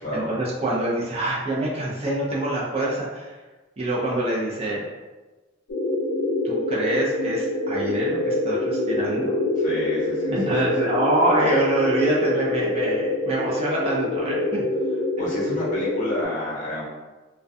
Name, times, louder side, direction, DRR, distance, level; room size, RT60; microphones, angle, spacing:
voice 1, 0.1-3.3 3.8-4.8 6.4-9.3 10.3-14.6, right 1 dB, 30° right, -5 dB, 0.5 m, -25 dB
sound 1, 5.7-16.3, left 2 dB, 80° left, 0.4 m, -25 dB
voice 2, 9.6-10.5 10.8-10.9 15.2-16.8, equal, 45° left, -6 dB, 0.8 m, -30 dB
2.3 x 2.1 x 2.5 m, 1.2 s
head